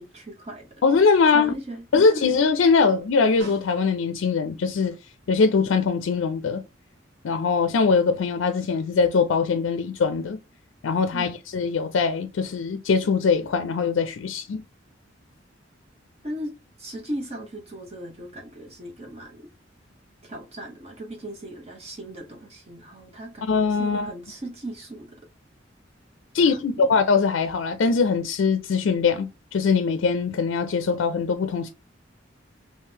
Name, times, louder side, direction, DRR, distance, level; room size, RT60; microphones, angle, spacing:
voice 1, 0.0-0.7 1.3-2.3 11.1-11.4 16.2-16.5 16.8-19.5 20.2-25.2 26.4-26.9, right 1 dB, 35° right, 0.8 m, -37 dB
voice 2, 0.8-1.5 1.9-5.0 5.3-6.6 7.2-10.4 10.8-14.6 23.5-24.1 26.3-31.7, left 5 dB, 80° left, 0.4 m, -22 dB
Snare drum, 3.4-4.3 8.8-8.9, equal, 55° right, 1.9 m, -44 dB
3.7 x 3.1 x 2.7 m
head